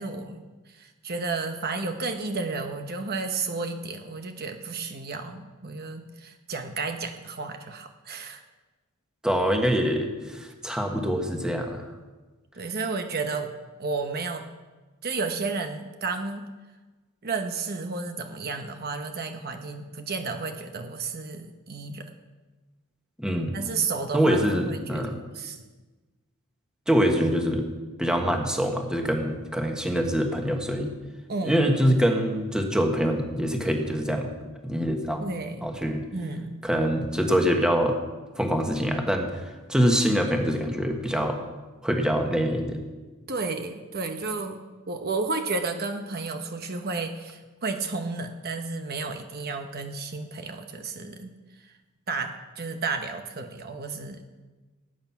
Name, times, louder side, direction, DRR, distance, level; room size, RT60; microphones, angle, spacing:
voice 1, 0.0-8.4 12.5-13.5 13.8-14.5 15.0-16.4 17.2-22.1 23.5-25.6 31.3-31.6 35.2-35.7 36.1-36.6 43.3-44.6 44.9-51.3 51.6-51.7 52.1-54.2, right 4 dB, 45° right, 6 dB, 1.0 m, -32 dB
voice 2, 9.2-11.9 23.2-23.5 24.1-25.1 26.9-27.6 28.0-30.9 31.4-34.3 34.6-35.2 35.6-36.0 36.6-38.0 38.4-41.4 41.8-42.8, equal, 5° right, 3 dB, 1.4 m, -24 dB
18.5 x 9.2 x 5.9 m, 1.3 s
head